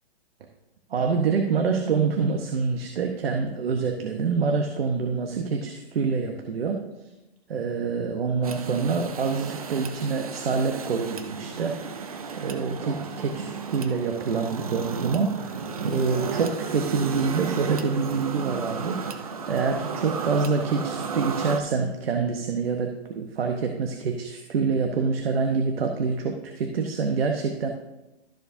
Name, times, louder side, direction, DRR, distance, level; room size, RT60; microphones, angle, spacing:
voice 1, 0.9-6.8 7.5-12.0 12.4-15.6 15.9-27.7, right 5 dB, 65° right, 4 dB, 1.0 m, -26 dB
sound 1, 8.4-21.6, right 5 dB, 35° right, 0.5 m, -33 dB
sound 2, 15.5-17.0, left 1 dB, 10° left, 1.2 m, -46 dB
13.0 x 7.0 x 2.7 m, 0.99 s
hypercardioid pair, 175°, 32 cm